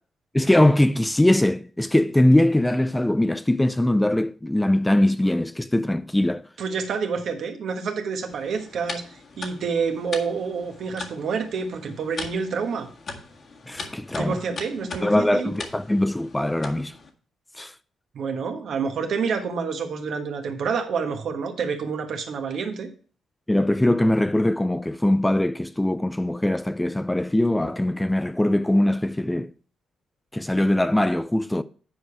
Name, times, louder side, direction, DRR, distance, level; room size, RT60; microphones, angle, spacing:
voice 1, 0.3-6.4 13.7-14.4 15.0-16.9 17.6-17.7 23.5-29.5 30.3-31.6, left 1 dB, 10° left, 0.4 m, -21 dB
voice 2, 6.6-9.0 9.4-12.9 14.1-15.5 18.1-22.9, right 5 dB, 65° right, 1.4 m, -28 dB
sound 1, 8.3-17.1, left 3 dB, 55° left, 1.8 m, -40 dB
9.3 x 5.0 x 4.7 m
cardioid pair, 90°, 0 cm